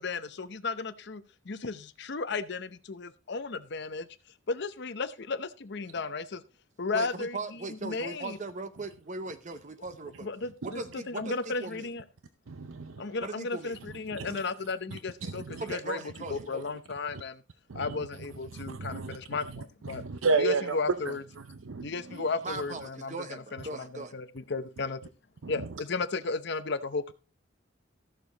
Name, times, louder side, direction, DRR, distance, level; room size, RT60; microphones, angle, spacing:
voice 1, 0.0-4.1 4.5-6.4 6.8-8.4 10.2-12.0 13.0-17.4 17.7-20.0 20.4-21.2 21.8-25.0 25.5-27.1, left 4 dB, 60° left, 0.7 m, -34 dB
voice 2, 6.9-10.3 10.6-11.9 13.2-13.8 15.6-16.6 22.4-24.1, right 3 dB, 40° right, 0.8 m, -39 dB
voice 3, 12.5-13.0 14.1-14.3 15.2-15.6 17.7-17.8 18.6-19.2 19.9-20.8 21.7-21.9, right 4 dB, 90° right, 0.6 m, -30 dB
14.0 x 6.8 x 4.0 m
head